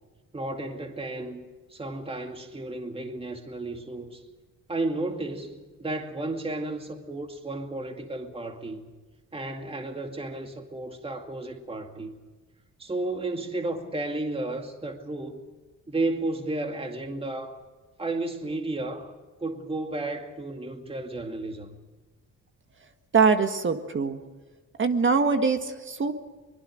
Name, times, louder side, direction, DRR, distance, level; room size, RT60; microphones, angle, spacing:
voice 1, 0.3-1.4 1.7-4.2 4.7-8.9 9.3-12.1 12.8-15.4 15.9-17.6 18.0-19.1 19.4-21.8, right 2 dB, 20° right, 2.3 m, -33 dB
voice 2, 23.1-24.2 24.8-26.1, right 5 dB, 40° right, 1.8 m, -23 dB
23.5 x 22.0 x 6.5 m
cardioid pair, 90°, 30 cm